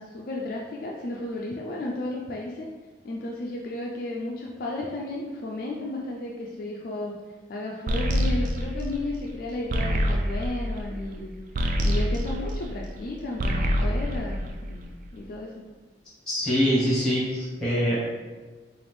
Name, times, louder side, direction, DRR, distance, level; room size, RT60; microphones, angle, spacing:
voice 1, 0.0-2.7 3.0-7.1 7.5-11.3 11.8-15.6, left 2 dB, 50° left, -2 dB, 0.4 m, -33 dB
sound 1, 7.9-13.0 13.3-15.1, equal, 45° right, 0.3 m, -26 dB
voice 2, 16.3-18.0, equal, 5° left, -8 dB, 1.5 m, -24 dB
4.1 x 2.5 x 3.3 m, 1.3 s
head